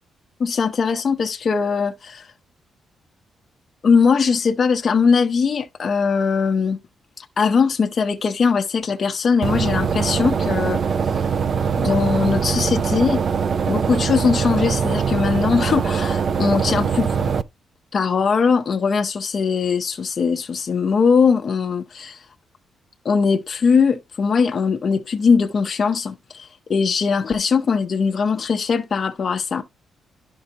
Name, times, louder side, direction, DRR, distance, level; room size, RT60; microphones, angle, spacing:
voice 1, 0.4-2.3 3.8-6.8 7.2-10.8 11.8-13.2 13.7-17.3 17.9-22.2 23.0-29.6, left 5 dB, 35° left, 0.7 m, -20 dB
sound 1, 9.4-17.4, right 6 dB, 40° right, 0.4 m, -22 dB
11.5 x 5.3 x 2.8 m
wide cardioid pair, 170°, 0 cm